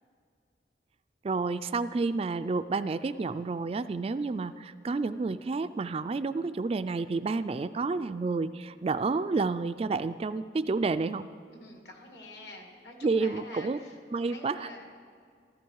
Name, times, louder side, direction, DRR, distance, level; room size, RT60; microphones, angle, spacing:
voice 1, 1.2-11.3 13.0-13.8 14.1-14.7, right 3 dB, 35° right, 12 dB, 0.3 m, -30 dB
voice 2, 11.5-14.8, left 2 dB, 70° left, 2 dB, 2.1 m, -47 dB
14.5 x 14.5 x 4.7 m, 2.2 s
head